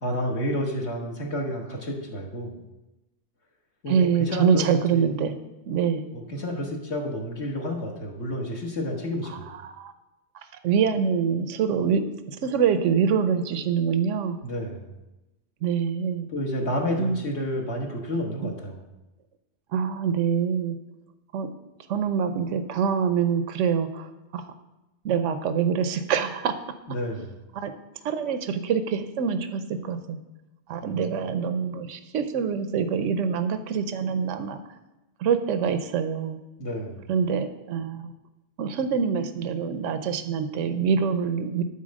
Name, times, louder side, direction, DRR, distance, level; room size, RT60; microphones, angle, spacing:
voice 1, 0.0-2.6 3.8-4.6 4.9-5.1 6.1-9.5 14.4-14.9 16.3-18.8 26.9-27.3 30.8-31.2 36.6-37.1, equal, 65° left, -1 dB, 1.9 m, -30 dB
voice 2, 3.9-5.3 5.7-6.0 9.5-9.9 10.6-12.0 12.4-14.4 15.6-16.3 17.0-17.2 19.7-20.8 21.3-21.5 21.9-24.4 25.0-26.5 27.5-27.7 28.0-30.2 30.7-34.6 35.2-36.4 37.1-38.1 38.6-41.6, right 7 dB, 85° right, 10 dB, 1.0 m, -25 dB
12.5 x 4.3 x 6.3 m, 1.0 s
omnidirectional pair, 1.2 m